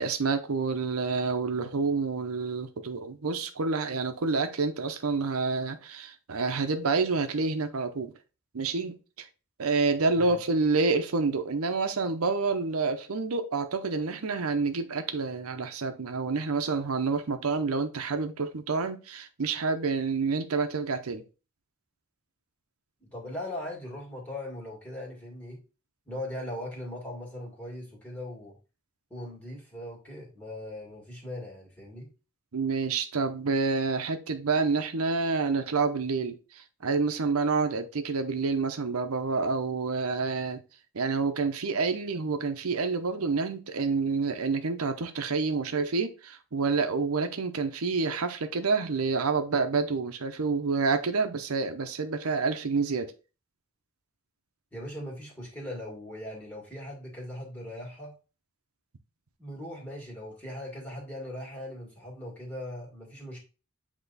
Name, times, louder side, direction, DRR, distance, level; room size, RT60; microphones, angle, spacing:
voice 1, 0.0-8.1 8.5-9.3 9.6-21.2 32.5-40.6 40.9-53.1, right 4 dB, 85° right, 0.7 m, -28 dB
voice 2, 23.0-25.6 26.1-28.6 29.1-32.1 54.7-58.1 59.4-63.4, left 1 dB, 5° left, 2.2 m, -39 dB
8.1 x 3.0 x 4.0 m
head